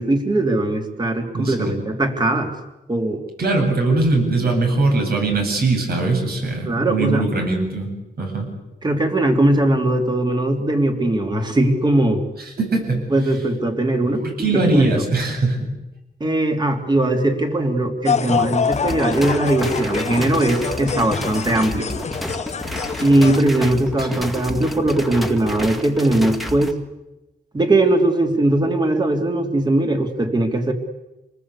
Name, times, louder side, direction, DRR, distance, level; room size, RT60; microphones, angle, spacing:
voice 1, 0.0-2.5 2.9-3.2 6.6-7.2 8.8-12.2 13.1-14.2 14.5-15.0 16.2-21.9 23.0-26.8 27.5-30.7, right 1 dB, 25° right, 4 dB, 3.1 m, -19 dB
voice 2, 1.3-1.8 3.4-7.9 8.2-8.5 12.6-13.1 14.2-15.6 24.0-24.2, right 3 dB, 65° right, 2 dB, 7.9 m, -21 dB
sound 1, 18.0-23.4, left 6 dB, 40° left, 0.9 m, -25 dB
sound 2, 18.7-26.7, left 1 dB, ahead, 2.0 m, -30 dB
27.0 x 19.5 x 8.5 m, 1.0 s
wide cardioid pair, 135°, 17 cm